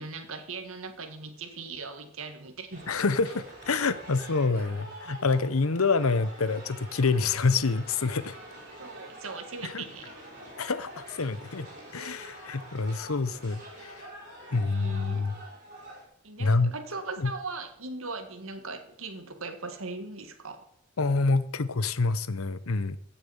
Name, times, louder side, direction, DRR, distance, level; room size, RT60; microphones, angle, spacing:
voice 1, 0.0-2.9 8.8-10.1 14.5-15.2 16.2-20.7, right 3 dB, 70° right, 1.8 m, -39 dB
sound 1, 2.7-16.1, right 1 dB, 40° right, 5.9 m, -46 dB
voice 2, 2.9-8.4 9.6-9.9 10.6-11.7 11.9-14.1 14.5-15.3 16.4-16.7 17.2-17.3 21.0-23.0, left 4 dB, 80° left, 0.8 m, -27 dB
15.5 x 6.9 x 7.2 m
head